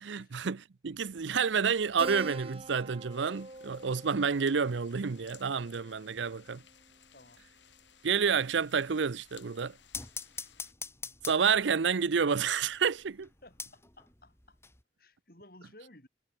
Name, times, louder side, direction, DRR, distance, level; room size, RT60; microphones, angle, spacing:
voice 1, 0.0-6.6 8.0-9.7 11.3-13.3, right 6 dB, 80° right, 0.6 m, -29 dB
sound 1, 0.8-14.8, left 4 dB, 15° left, 5.0 m, -49 dB
Keyboard (musical), 2.0-6.9, right 2 dB, 30° right, 1.5 m, -45 dB
sound 2, 3.1-10.7, left 10 dB, 80° left, 4.2 m, -60 dB
voice 2, 7.1-7.5 12.9-13.0 13.4-14.6 15.0-16.1, left 1 dB, 50° left, 6.6 m, -56 dB
head